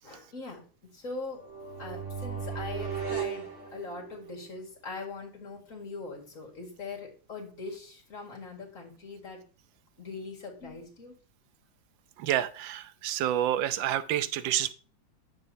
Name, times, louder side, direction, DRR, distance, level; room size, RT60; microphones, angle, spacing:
voice 1, 0.0-0.6 0.9-1.4 1.8-9.4 10.0-11.1, left 3 dB, 45° left, 2.2 m, -41 dB
sound 1, 1.3-4.4, right 7 dB, 65° right, 3.0 m, -36 dB
voice 2, 12.2-14.7, right 12 dB, 80° right, 1.3 m, -28 dB
9.6 x 7.1 x 2.7 m
omnidirectional pair, 2.1 m